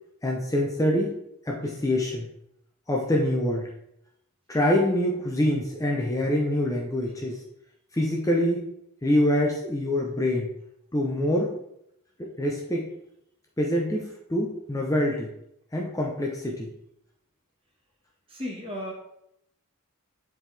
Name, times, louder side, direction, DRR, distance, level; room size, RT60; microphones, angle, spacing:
voice 1, 0.2-1.1 1.5-2.3 2.9-3.7 4.5-7.4 7.9-8.7 9.0-10.5 10.9-11.5 12.2-12.9 13.6-15.3 15.7-16.7, left 1 dB, 15° left, -2 dB, 0.7 m, -25 dB
voice 2, 18.3-18.9, left 1 dB, 25° right, -1 dB, 1.5 m, -34 dB
7.9 x 4.5 x 3.4 m, 0.78 s
head